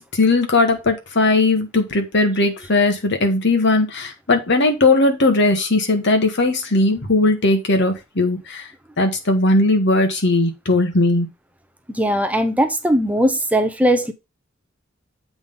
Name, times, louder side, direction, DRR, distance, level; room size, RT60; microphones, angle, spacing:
voice 1, 0.0-8.7 9.0-11.3, left 2 dB, 60° left, 1.6 m, -18 dB
voice 2, 11.9-14.1, equal, 5° right, 0.8 m, -19 dB
8.0 x 3.8 x 5.2 m
head